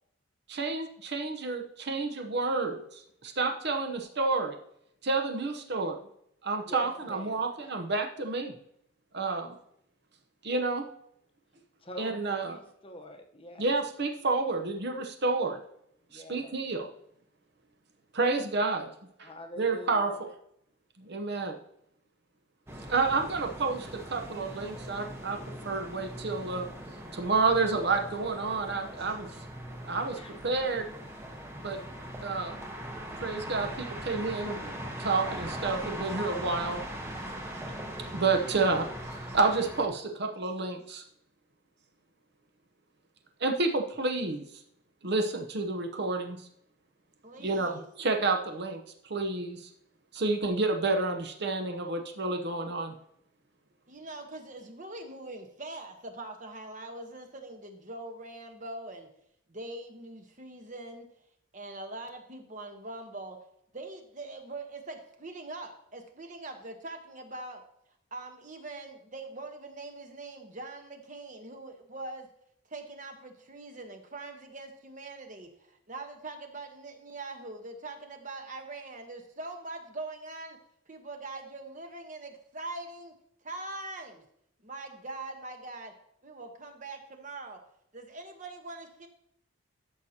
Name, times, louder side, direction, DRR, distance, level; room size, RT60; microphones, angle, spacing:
voice 1, 0.5-4.6 5.0-6.0 6.4-8.5 9.1-9.5 10.4-10.8 12.0-12.6 13.6-15.6 16.1-16.9 18.1-18.9 19.2-19.3 19.6-20.3 21.0-21.6 22.9-25.4 25.6-26.7 27.1-29.3 29.8-30.9 31.6-31.8 32.2-32.6 33.2-34.7 35.0-36.8 38.1-41.0 43.4-44.5 45.0-46.4 47.4-49.7 50.1-52.9, right 3 dB, 50° right, 4 dB, 0.8 m, -30 dB
voice 2, 6.7-7.4 11.8-13.7 16.1-16.5 19.2-20.2 29.3-29.4 30.1-30.4, equal, 25° left, 4 dB, 0.9 m, -45 dB
sound 1, 22.7-39.9, equal, 10° right, 0.9 m, -40 dB
voice 3, 47.2-47.8 53.9-59.1 59.5-61.1 61.5-63.4 63.7-67.6 68.1-72.3 72.7-75.5 75.9-80.6 80.9-83.1 83.4-84.2 84.6-85.9 86.2-87.6 87.9-89.1, right 2 dB, 35° right, 5 dB, 1.1 m, -42 dB
13.0 x 6.5 x 2.8 m, 0.72 s
head